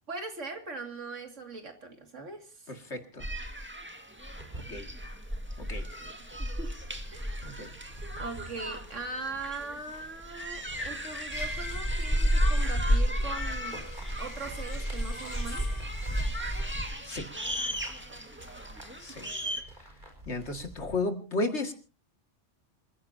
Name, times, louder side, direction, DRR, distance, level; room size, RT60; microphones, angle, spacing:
voice 1, 0.1-2.7 6.0-6.8 7.1-7.4 8.2-13.8 14.2-15.7 18.6-19.2, right 3 dB, 85° right, 5 dB, 2.7 m, -41 dB
voice 2, 2.7-3.3 4.6-4.9 5.6-5.9 7.4-7.7 17.0-17.3 19.0-19.3 20.3-21.7, left 2 dB, 70° left, 6 dB, 2.5 m, -34 dB
sound 1, 3.2-19.6, equal, 10° right, 1.8 m, -39 dB
sound 2, 4.4-21.0, right 1 dB, 40° right, 5.1 m, -50 dB
sound 3, 11.3-16.9, equal, 15° left, 4.3 m, -29 dB
27.0 x 15.5 x 2.8 m, 0.34 s
omnidirectional pair, 1.2 m